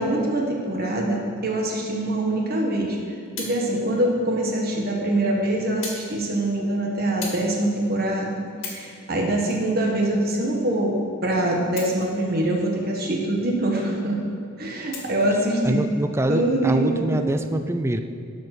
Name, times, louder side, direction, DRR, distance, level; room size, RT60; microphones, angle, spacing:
voice 1, 0.0-11.0 11.2-14.2 14.6-15.8 16.3-17.3, right 1 dB, 45° right, 0 dB, 1.3 m, -24 dB
sound 1, 3.3-3.6 4.5-4.6 5.8-6.1 6.4-6.6 7.2-7.5 8.0-8.1 8.5-8.9 9.4-10.4 11.6-12.3 12.8-12.9 14.9-15.3 16.2-16.3, left 4 dB, 75° left, 2.1 m, -36 dB
voice 2, 15.6-18.0, right 1 dB, 15° right, 7 dB, 0.4 m, -24 dB
12.0 x 4.9 x 6.5 m, 2.5 s
head